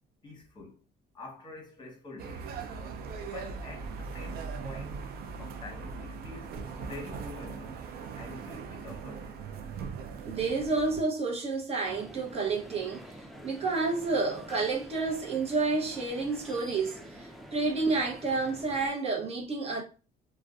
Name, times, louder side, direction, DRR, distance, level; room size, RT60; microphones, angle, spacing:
voice 1, 0.2-0.8 1.1-2.5 3.3-5.0 5.4-7.8 8.1-9.4, left 3 dB, 25° left, 1.0 m, -46 dB
sound 1, 2.2-11.0, right 5 dB, 65° right, 0.4 m, -40 dB
voice 2, 10.2-13.2 13.4-19.8, right 3 dB, 35° right, 0.8 m, -30 dB
sound 2, 11.8-18.9, equal, ahead, 0.4 m, -47 dB
2.4 x 2.1 x 2.4 m
cardioid pair, 110°, 17 cm